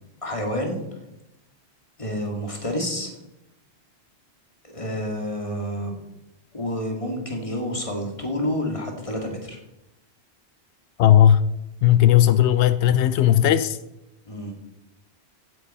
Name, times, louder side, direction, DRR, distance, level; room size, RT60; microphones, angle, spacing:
voice 1, 0.2-1.0 2.0-3.1 4.6-6.0 6.5-9.6 14.3-14.5, equal, 30° left, 2 dB, 2.2 m, -29 dB
voice 2, 11.0-11.4 11.8-13.8, left 11 dB, 90° left, 14 dB, 0.9 m, -16 dB
15.5 x 9.5 x 4.3 m, 0.91 s
omnidirectional pair, 1.1 m